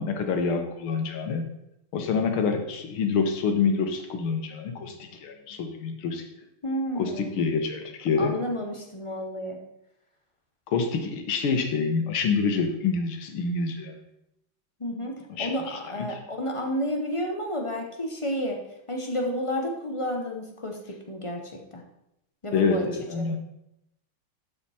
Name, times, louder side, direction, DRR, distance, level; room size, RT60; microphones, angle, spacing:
voice 1, 0.0-1.5 1.9-6.2 7.0-8.4 10.7-14.0 15.3-16.2 22.5-23.4, left 5 dB, 90° left, 6 dB, 2.0 m, -27 dB
voice 2, 6.6-7.3 8.2-9.6 14.8-15.1 15.4-18.6 18.9-21.4 21.7-21.8 22.4-22.9 23.1-23.3, equal, 35° left, 2 dB, 0.5 m, -31 dB
12.0 x 5.2 x 4.3 m, 0.83 s
omnidirectional pair, 2.3 m